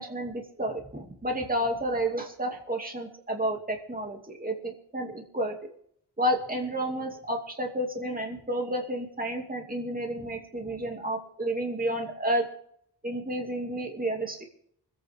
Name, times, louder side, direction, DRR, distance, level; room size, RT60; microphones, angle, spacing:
voice 1, 0.0-5.6 6.2-12.5 13.0-14.4, right 1 dB, 20° right, 2 dB, 2.6 m, -31 dB
25.5 x 9.2 x 3.6 m, 0.66 s
wide cardioid pair, 75°, 41 cm